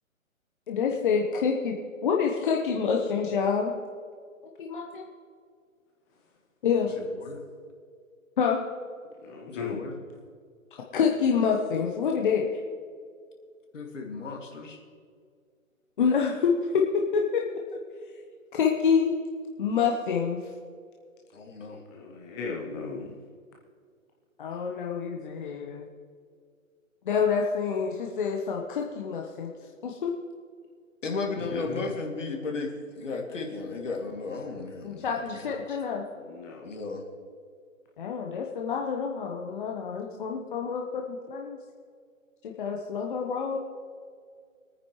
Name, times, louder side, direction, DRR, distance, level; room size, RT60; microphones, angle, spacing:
voice 1, 0.7-1.7 2.0-3.7 4.6-5.1 6.6-6.9 8.4-8.6 10.9-12.6 16.0-17.5 18.5-19.2 19.6-20.4 24.4-25.9 27.0-29.5 29.8-30.1 34.8-36.0 38.0-41.6 42.4-43.6, left 6 dB, 35° left, 0 dB, 1.1 m, -27 dB
voice 2, 7.0-7.5 9.5-10.0 13.7-14.8 21.3-21.8 31.0-35.8 36.6-37.0, left 3 dB, 60° left, 2 dB, 2.5 m, -35 dB
voice 3, 9.2-9.8 21.9-23.1 31.4-31.9 36.1-36.7, left 5 dB, 15° left, -2 dB, 0.8 m, -37 dB
24.5 x 9.5 x 3.2 m, 2.1 s
figure-of-eight pair, 140°, 41 cm